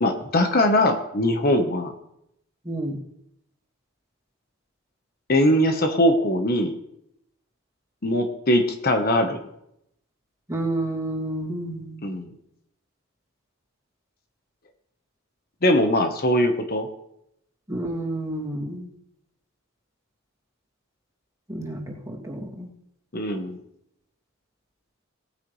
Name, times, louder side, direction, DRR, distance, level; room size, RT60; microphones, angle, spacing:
voice 1, 0.0-1.9 5.3-6.7 8.0-9.4 12.0-12.3 15.6-16.9 23.1-23.6, left 1 dB, 50° left, 6 dB, 1.2 m, -21 dB
voice 2, 2.6-3.0 10.5-12.0 17.7-18.9 21.5-22.7, right 1 dB, 15° right, -3 dB, 2.6 m, -30 dB
18.0 x 9.4 x 3.2 m, 0.77 s
head